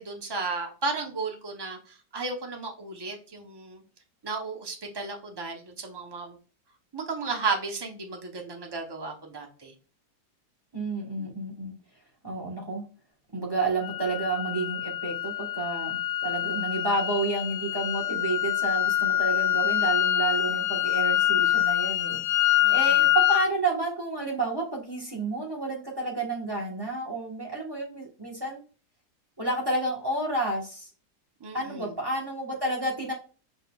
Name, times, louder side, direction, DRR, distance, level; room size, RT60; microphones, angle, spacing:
voice 1, 0.0-3.8 4.2-6.3 6.9-9.7 11.2-11.4 22.6-23.1 31.4-31.9, right 4 dB, 35° right, 2 dB, 0.4 m, -34 dB
voice 2, 10.7-11.7 12.2-12.8 13.3-22.2 22.7-28.6 29.4-30.9 31.5-33.1, right 2 dB, 15° right, 0 dB, 1.0 m, -30 dB
sound 1, 13.8-23.5, left 13 dB, 80° left, 1.2 m, -25 dB
5.1 x 4.3 x 2.3 m, 0.37 s
omnidirectional pair, 1.8 m